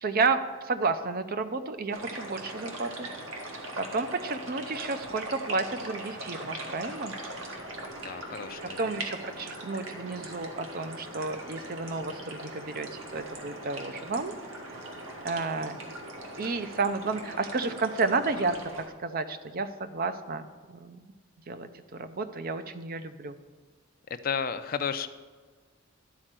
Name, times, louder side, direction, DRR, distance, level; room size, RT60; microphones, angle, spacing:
voice 1, 0.0-3.1 3.8-7.1 8.8-14.3 15.2-15.8 16.4-21.0 21.5-23.4, right 4 dB, 45° right, 10 dB, 0.6 m, -31 dB
sound 1, 1.9-18.9, right 1 dB, 65° right, 1.5 m, -40 dB
voice 2, 7.9-8.9 24.1-25.1, left 6 dB, 45° left, 10 dB, 0.5 m, -33 dB
12.5 x 4.4 x 7.5 m, 1.4 s
head